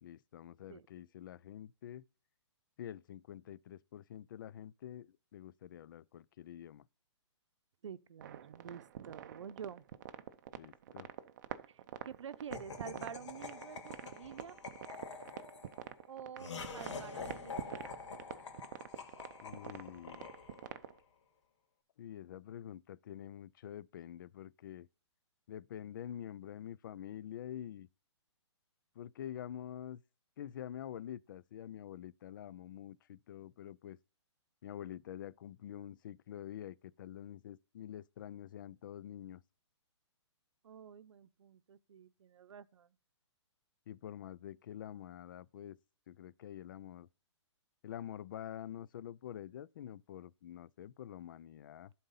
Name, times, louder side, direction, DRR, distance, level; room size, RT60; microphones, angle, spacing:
voice 1, 0.0-2.0 2.8-6.9 10.5-11.1 19.4-20.3 22.0-24.9 25.5-27.9 29.0-30.0 30.4-34.0 34.6-39.4 43.9-45.8 46.1-47.1 47.8-51.9, left 10 dB, 45° left, 0.4 m, -47 dB
voice 2, 7.8-9.9 11.7-14.6 16.1-17.9 40.6-43.0, right 8 dB, 80° right, 0.7 m, -49 dB
sound 1, 8.2-21.0, right 11 dB, 40° right, 0.6 m, -46 dB
Laughter, 12.5-20.9, left 5 dB, 75° left, 2.2 m, -47 dB
11.5 x 4.1 x 5.5 m
hypercardioid pair, 160°, 15 cm